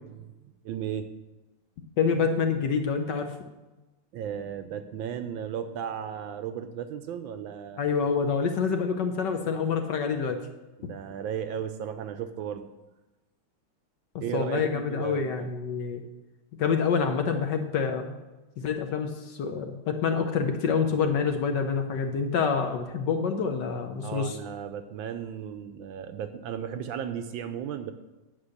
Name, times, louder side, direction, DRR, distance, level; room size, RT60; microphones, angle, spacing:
voice 1, 0.6-1.1 4.1-7.8 10.8-12.7 14.2-15.5 24.0-27.9, right 8 dB, 75° right, 9 dB, 1.2 m, -35 dB
voice 2, 2.0-3.3 7.8-10.4 14.3-16.0 16.6-18.2 18.6-24.4, left 5 dB, 65° left, 5 dB, 1.3 m, -27 dB
9.7 x 5.9 x 6.5 m, 1.1 s
omnidirectional pair, 2.4 m